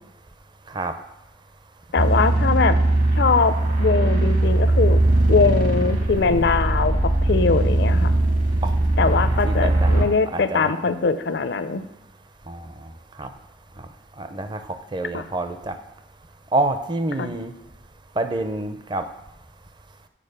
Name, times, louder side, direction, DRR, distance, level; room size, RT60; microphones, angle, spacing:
voice 1, 1.9-2.8 3.1-3.5 3.8-5.0 5.3-8.2 9.0-11.8 15.1-15.2 17.2-17.3, left 4 dB, 65° left, 11 dB, 0.5 m, -21 dB
sound 1, 2.0-10.0, right 1 dB, 50° right, 1.2 m, -20 dB
voice 2, 9.5-10.7 12.5-12.9 13.2-13.3 14.2-15.8 16.5-17.5 18.2-19.0, right 2 dB, 25° right, 9 dB, 0.5 m, -27 dB
7.5 x 4.4 x 6.6 m, 0.90 s
head